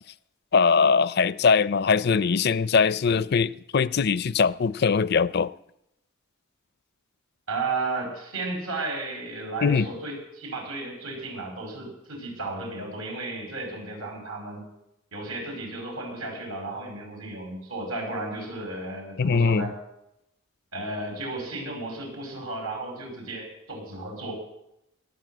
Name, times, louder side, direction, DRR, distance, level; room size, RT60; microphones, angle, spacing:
voice 1, 0.5-5.5 9.6-9.9 19.2-19.7, left 5 dB, 50° left, 16 dB, 0.5 m, -21 dB
voice 2, 7.5-14.6 15.1-19.7 20.7-24.3, right 2 dB, 80° right, 2 dB, 6.0 m, -34 dB
18.5 x 9.2 x 7.8 m, 0.85 s
head